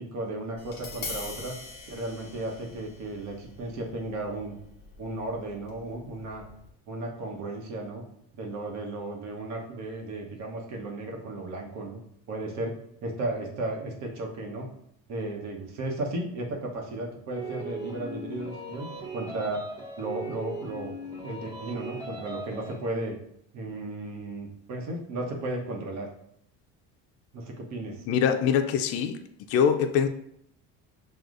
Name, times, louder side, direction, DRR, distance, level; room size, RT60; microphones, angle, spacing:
voice 1, 0.0-1.5 1.9-4.5 5.0-6.4 6.9-8.0 8.3-12.0 12.3-12.7 13.0-14.7 15.1-18.9 19.1-19.6 20.0-20.9 21.2-23.2 23.5-26.1 27.3-28.0, right 2 dB, 60° right, 1 dB, 1.0 m, -34 dB
Tap, 0.6-6.7, left 3 dB, 30° left, 1.1 m, -43 dB
sound 1, 17.3-22.8, right 2 dB, 10° right, 0.9 m, -39 dB
voice 2, 28.1-29.2 29.5-30.1, left 7 dB, 50° left, 7 dB, 0.4 m, -23 dB
6.2 x 2.3 x 2.5 m, 0.72 s
cardioid pair, 125°, 31 cm